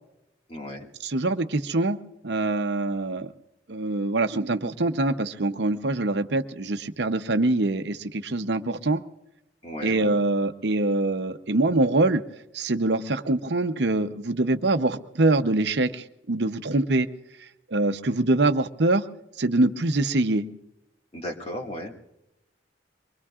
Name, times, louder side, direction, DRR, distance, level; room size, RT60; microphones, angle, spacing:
voice 1, 0.5-0.9 9.6-10.2 21.1-21.9, equal, 30° left, 1 dB, 2.0 m, -35 dB
voice 2, 1.0-2.0 2.2-3.3 3.7-9.0 9.8-12.2 12.5-17.1 17.4-19.1 19.4-20.5, right 2 dB, 60° right, 8 dB, 0.7 m, -24 dB
24.5 x 22.0 x 2.4 m, 0.90 s
head